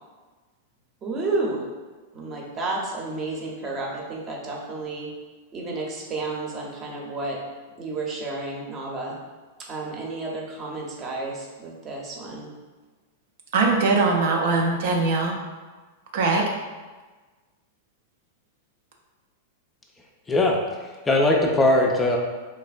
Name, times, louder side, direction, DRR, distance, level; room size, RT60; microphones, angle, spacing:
voice 1, 1.0-1.6 2.1-5.1 5.5-7.4 7.8-9.1 9.7-12.5, right 3 dB, 30° right, -2 dB, 0.7 m, -31 dB
voice 2, 13.5-15.4 16.1-16.5, right 3 dB, 65° right, 0 dB, 0.4 m, -21 dB
voice 3, 20.3-22.2, left 2 dB, 15° left, -1 dB, 0.4 m, -20 dB
3.2 x 2.1 x 2.4 m, 1.3 s
hypercardioid pair, 100°, 0 cm